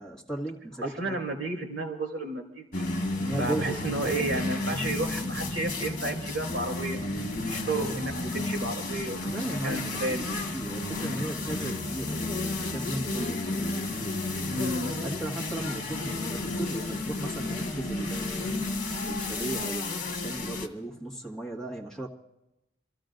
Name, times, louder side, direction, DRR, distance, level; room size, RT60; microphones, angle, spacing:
voice 1, 0.0-1.1 3.2-3.8 9.2-12.2 12.5-13.4 15.0-18.6 19.0-22.1, right 1 dB, 5° left, -3 dB, 1.8 m, -36 dB
voice 2, 0.8-2.9 3.3-7.1 7.5-10.3 14.4-15.0, right 2 dB, 75° right, 2 dB, 3.2 m, -32 dB
sound 1, 2.7-20.7, left 2 dB, 50° left, 1.7 m, -32 dB
27.5 x 15.0 x 2.6 m, 0.88 s
head